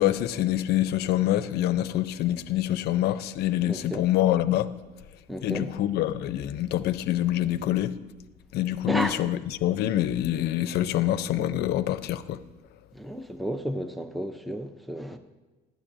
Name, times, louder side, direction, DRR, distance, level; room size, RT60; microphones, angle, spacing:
voice 1, 0.0-4.7 5.4-7.9 8.5-12.4, left 13 dB, 75° left, 0.5 m, -26 dB
voice 2, 3.7-4.0 5.3-5.7 8.9-9.2 12.9-15.2, equal, ahead, 0.5 m, -32 dB
12.5 x 8.7 x 2.6 m
cardioid pair, 110°, 17 cm